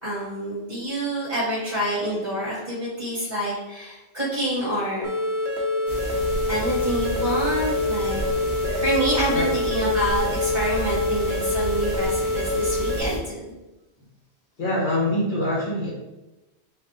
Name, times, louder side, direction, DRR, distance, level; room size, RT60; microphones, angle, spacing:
voice 1, 0.0-5.1 6.5-8.3 8.8-13.5, right 1 dB, 45° right, -8 dB, 1.6 m, -27 dB
sound 1, 5.0-13.0, left 2 dB, 65° right, 1.2 m, -26 dB
sound 2, 5.9-13.2, right 1 dB, 80° left, 1.7 m, -32 dB
voice 2, 14.6-15.9, left 1 dB, 45° left, -5 dB, 1.3 m, -24 dB
4.4 x 2.8 x 3.8 m, 1.0 s
omnidirectional pair, 1.2 m